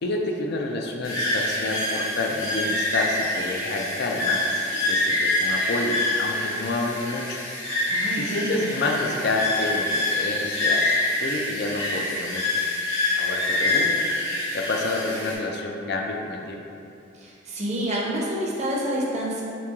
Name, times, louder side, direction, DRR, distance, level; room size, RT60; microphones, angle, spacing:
voice 1, 0.0-4.5 4.7-7.4 8.2-10.9 11.2-12.5 13.1-14.1 14.5-16.6, left 2 dB, 55° left, 1 dB, 0.4 m, -28 dB
sound 1, 1.0-15.3, left 2 dB, 80° left, 1.1 m, -26 dB
voice 2, 7.9-8.7 17.2-19.4, equal, 35° right, -4 dB, 0.6 m, -28 dB
3.7 x 3.0 x 3.5 m, 2.7 s
head